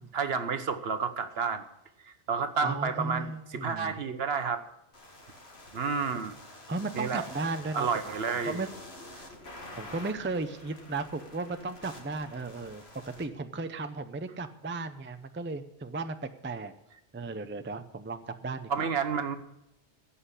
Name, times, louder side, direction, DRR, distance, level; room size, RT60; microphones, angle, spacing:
voice 1, 0.1-1.6 2.0-4.6 5.7-6.3 6.9-7.2 7.7-8.6 18.7-19.4, right 5 dB, 65° right, 9 dB, 1.2 m, -30 dB
voice 2, 2.6-4.0 6.1-6.3 6.7-8.7 9.1-9.3 9.7-16.2 16.4-16.7 17.1-18.9, right 3 dB, 15° right, 9 dB, 0.5 m, -35 dB
sound 1, 4.9-13.2, left 1 dB, 65° left, 2.3 m, -48 dB
15.5 x 5.7 x 8.3 m, 0.87 s
omnidirectional pair, 1.1 m